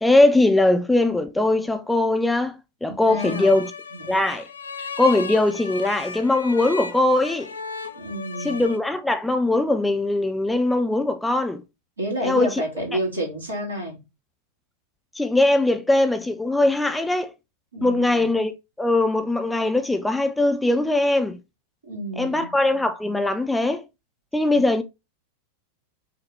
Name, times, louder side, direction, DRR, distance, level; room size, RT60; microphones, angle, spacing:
voice 1, 0.0-2.5 2.8-3.7 4.1-4.5 5.0-7.5 8.4-11.6 12.2-12.6 15.2-17.3 17.8-18.5 18.8-21.4 22.2-23.8 24.3-24.8, left 2 dB, 5° left, 0.4 m, -21 dB
voice 2, 2.9-3.5 3.9-4.1 8.0-8.6 12.0-14.0 17.7-18.4 21.8-22.5 24.6-24.7, equal, 80° right, 1.8 m, -30 dB
sound 1, 3.2-8.8, left 5 dB, 75° left, 0.4 m, -36 dB
5.1 x 2.1 x 3.1 m
figure-of-eight pair, 90°, 0 cm